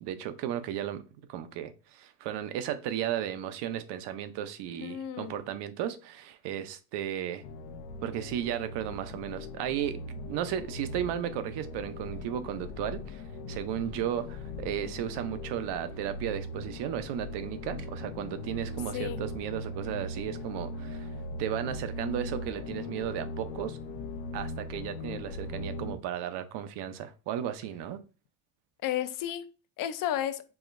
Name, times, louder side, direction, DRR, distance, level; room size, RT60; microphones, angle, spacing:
voice 1, 0.0-1.0 1.3-7.4 8.0-10.0 10.3-13.2 13.5-21.1 21.4-23.8 24.3-28.0, right 10 dB, 65° right, 0.7 m, -34 dB
voice 2, 4.8-5.3 18.9-19.2 28.8-29.4 29.8-30.4, left 11 dB, 50° left, 0.5 m, -32 dB
sound 1, 7.4-26.0, left 2 dB, 80° left, 0.7 m, -39 dB
5.0 x 3.0 x 2.5 m
cardioid pair, 130°, 44 cm